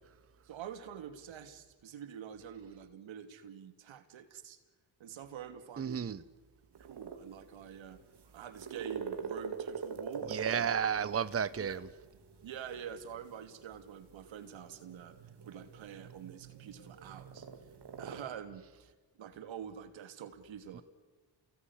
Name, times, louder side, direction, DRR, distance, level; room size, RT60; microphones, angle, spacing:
voice 1, 0.4-4.6 5.0-6.2 6.8-8.0 8.3-10.9 11.6-11.8 12.4-15.2 15.4-17.5 18.0-18.9 19.2-20.8, right 8 dB, 80° right, 2.8 m, -46 dB
voice 2, 5.8-6.2 10.3-11.8 20.7-20.8, right 7 dB, 30° right, 0.9 m, -32 dB
sound 1, 6.7-18.2, right 6 dB, 60° right, 3.5 m, -45 dB
30.0 x 20.0 x 10.0 m
cardioid pair, 65°, 46 cm